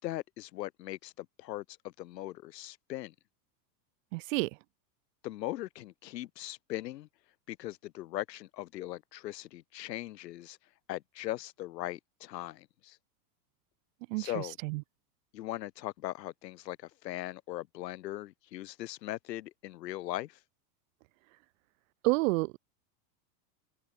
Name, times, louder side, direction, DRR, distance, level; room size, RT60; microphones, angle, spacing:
voice 1, 0.0-3.1 5.2-7.1 7.5-10.6 10.9-13.0 14.2-14.6 15.3-20.4, left 15 dB, 75° left, 4.3 m, -39 dB
voice 2, 4.1-4.5 14.1-14.3 14.6-14.8 22.0-22.6, right 25 dB, 50° right, 1.1 m, -28 dB
supercardioid pair, 150°, 50 cm